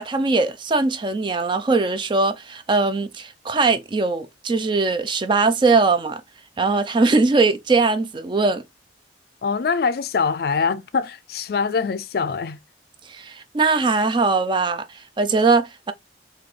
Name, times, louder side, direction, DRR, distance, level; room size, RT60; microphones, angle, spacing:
voice 1, 0.0-6.2 6.6-8.6 13.1-14.9 15.2-15.9, right 3 dB, 25° right, 0.4 m, -20 dB
voice 2, 9.4-12.6, left 5 dB, 55° left, 0.4 m, -23 dB
3.9 x 2.7 x 3.2 m
head